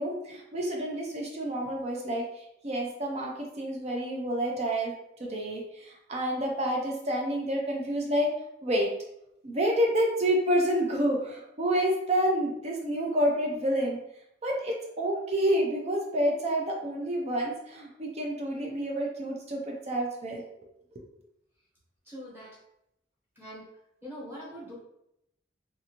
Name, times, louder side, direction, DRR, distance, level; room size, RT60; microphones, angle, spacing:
voice 1, 0.0-4.9 5.2-8.3 8.6-8.9 9.4-14.0 14.4-20.4, equal, 35° right, 0 dB, 0.4 m, -29 dB
voice 2, 22.0-22.6 23.4-23.7 24.0-24.7, equal, 10° right, -7 dB, 1.0 m, -43 dB
2.6 x 2.5 x 2.8 m, 0.81 s
head